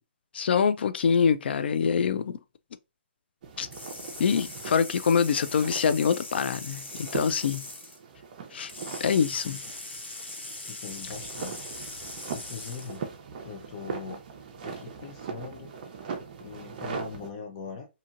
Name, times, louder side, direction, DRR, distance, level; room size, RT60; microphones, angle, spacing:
voice 1, 0.3-2.4 3.6-3.7 4.2-7.6 8.5-8.7 9.0-9.6, left 6 dB, 65° left, 0.3 m, -25 dB
sound 1, 3.4-17.3, right 6 dB, 40° right, 0.6 m, -41 dB
sound 2, 3.7-8.0 8.7-13.0, left 2 dB, 90° left, 1.8 m, -41 dB
voice 2, 10.7-11.6 12.0-13.0 13.4-14.2 14.6-17.9, left 5 dB, 35° left, 0.7 m, -41 dB
2.8 x 2.7 x 2.4 m
hypercardioid pair, 160°, 6 cm